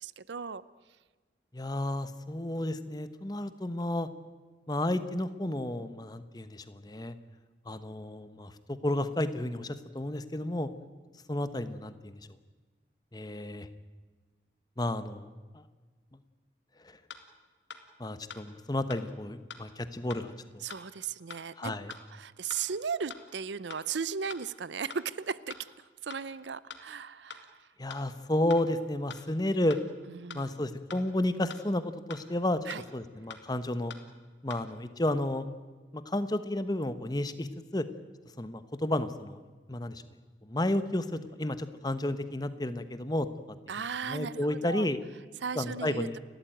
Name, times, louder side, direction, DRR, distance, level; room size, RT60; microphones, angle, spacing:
voice 1, 0.0-0.6 20.6-25.6 26.0-27.5 30.1-30.6 32.7-32.8 43.7-44.9 45.4-46.1, right 6 dB, 80° right, 18 dB, 0.6 m, -36 dB
voice 2, 1.5-4.1 4.7-7.1 7.7-8.5 8.8-10.7 11.3-12.2 13.1-13.7 14.8-15.3 15.5-15.6 18.0-20.6 21.6-21.9 27.8-29.8 30.3-31.8 32.1-32.6 32.9-33.9 34.4-35.5 35.9-37.5 37.7-37.9 38.4-39.4 39.7-40.0 40.4-43.3 44.1-45.0 45.5-46.2, left 1 dB, 20° left, 12 dB, 1.0 m, -32 dB
sound 1, 17.1-17.2 17.7-17.8 18.3-18.4 18.9-19.0 19.5-19.6 20.1-20.2 20.7-20.8 21.3-21.4 21.9-22.0 22.5-22.6 23.1-23.2 23.7-23.8 24.3-24.4 24.9-25.0 25.5-25.6 26.1-26.2 26.7-26.8 27.3-27.4 27.9-28.0 28.5-28.6 29.1-29.2 29.7-29.8 30.3-30.4 30.9-31.0 31.5-31.6 32.1-32.2 32.7-32.8 33.3-33.4 33.9-34.0 34.5-34.6, left 5 dB, 75° left, 2.1 m, -43 dB
30.0 x 13.5 x 9.2 m, 1.4 s
head